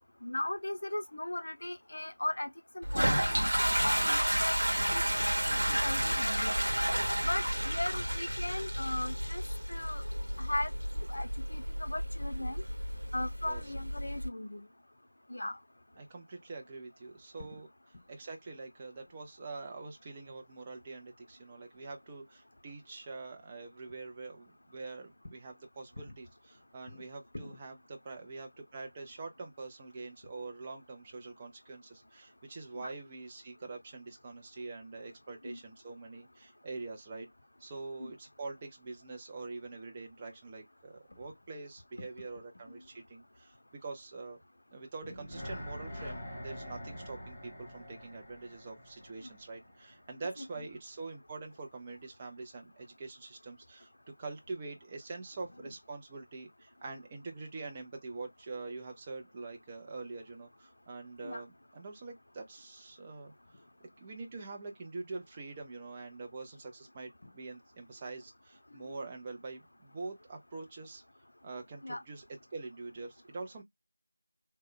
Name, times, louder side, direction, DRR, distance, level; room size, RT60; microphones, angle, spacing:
voice 1, 0.2-2.5 2.7-3.3 3.8-4.6 4.9-6.5 7.2-9.4 9.7-10.0 10.4-10.7 11.0-12.6 13.1-14.6 15.3-15.6 27.3-27.6 32.7-32.9 35.4-35.6 38.0-38.1 61.2-61.4 68.8-69.0 71.8-72.0, left 1 dB, 65° left, 0.7 m, -37 dB
Toilet flush, 2.8-14.3, equal, 80° right, 1.0 m, -31 dB
voice 2, 16.0-17.7 18.1-37.3 37.6-43.5 43.8-44.4 44.7-53.9 54.2-63.6 64.0-71.0 71.4-72.3 72.5-73.6, right 3 dB, 15° right, 0.5 m, -45 dB
sound 1, 45.0-50.2 50.5-50.6, equal, 15° left, 1.6 m, -45 dB
3.2 x 2.1 x 3.7 m
figure-of-eight pair, 170°, 0 cm